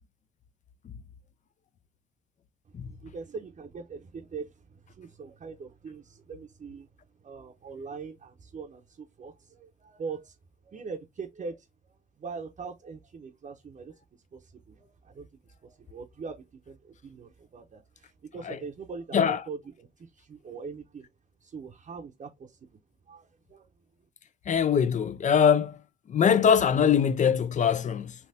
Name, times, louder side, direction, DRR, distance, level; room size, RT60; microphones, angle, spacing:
voice 1, 2.8-6.9 7.2-10.3 10.7-11.7 12.2-13.9 14.3-15.3 15.6-16.4 16.7-21.0 21.4-22.6 23.1-23.7, right 5 dB, 40° right, 0.7 m, -42 dB
voice 2, 24.5-25.8 26.1-28.2, left 7 dB, 40° left, 0.4 m, -22 dB
3.3 x 2.8 x 2.7 m
cardioid pair, 90°, 20 cm